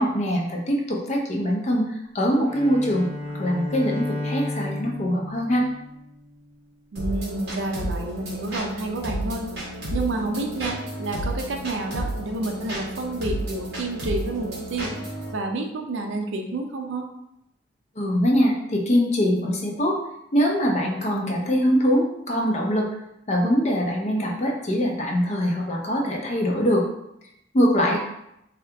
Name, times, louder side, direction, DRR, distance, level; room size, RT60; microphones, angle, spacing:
voice 1, 0.0-1.8 2.1-3.1 3.3-5.6 18.0-20.0 20.3-22.9 23.3-26.8 27.5-28.0, equal, 35° left, 0 dB, 0.5 m, -22 dB
Bowed string instrument, 2.4-6.6, left 1 dB, 30° right, 0.9 m, -33 dB
voice 2, 6.9-9.5 9.9-14.9 15.3-17.1, right 2 dB, 75° right, 4 dB, 0.5 m, -29 dB
sound 1, 7.0-15.3, right 1 dB, 55° right, 1.2 m, -32 dB
2.8 x 2.3 x 3.3 m, 0.82 s
head